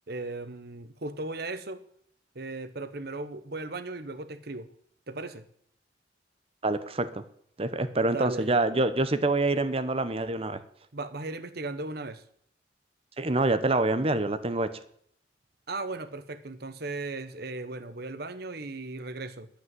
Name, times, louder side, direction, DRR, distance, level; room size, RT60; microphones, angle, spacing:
voice 1, 0.1-1.8 2.3-4.7 5.1-5.5 7.8-8.5 10.9-12.2 15.7-19.5, right 2 dB, 55° right, 12 dB, 1.1 m, -37 dB
voice 2, 6.6-7.2 7.6-10.6 13.2-14.7, right 2 dB, 30° right, 12 dB, 0.8 m, -26 dB
11.0 x 8.5 x 7.9 m, 0.67 s
head